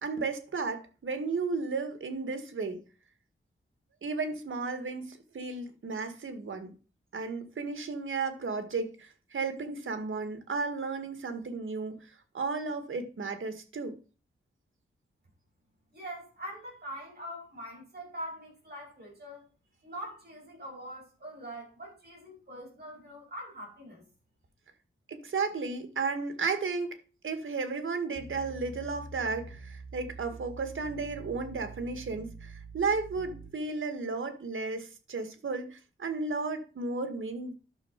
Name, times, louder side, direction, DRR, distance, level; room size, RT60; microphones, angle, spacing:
voice 1, 0.0-2.8 4.0-6.7 7.1-14.0 25.1-27.0 27.2-37.5, right 4 dB, 75° right, 1.9 m, -34 dB
voice 2, 15.9-19.4 19.8-24.0, equal, 50° right, 7.5 m, -43 dB
sound 1, 28.1-33.5, right 3 dB, 35° right, 3.4 m, -46 dB
11.0 x 6.6 x 5.9 m
wide cardioid pair, 105°, 21 cm